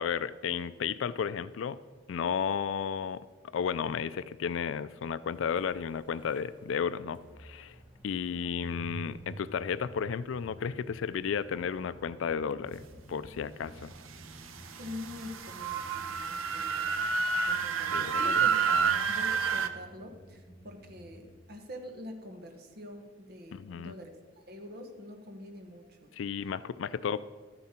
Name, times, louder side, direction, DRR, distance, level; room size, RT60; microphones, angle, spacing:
voice 1, 0.0-1.8 2.1-3.2 3.5-7.8 8.0-12.8 13.1-13.9 17.9-19.1 23.5-23.9 26.1-27.2, left 7 dB, 75° left, 15 dB, 0.4 m, -33 dB
sound 1, 5.4-21.3, equal, 10° right, 1.4 m, -50 dB
sound 2, 14.6-19.7, right 6 dB, 85° right, 0.7 m, -29 dB
voice 2, 14.7-18.6 19.1-24.1 24.5-26.1, left 1 dB, 50° right, 4 dB, 1.3 m, -45 dB
12.5 x 9.6 x 4.3 m, 1.4 s
head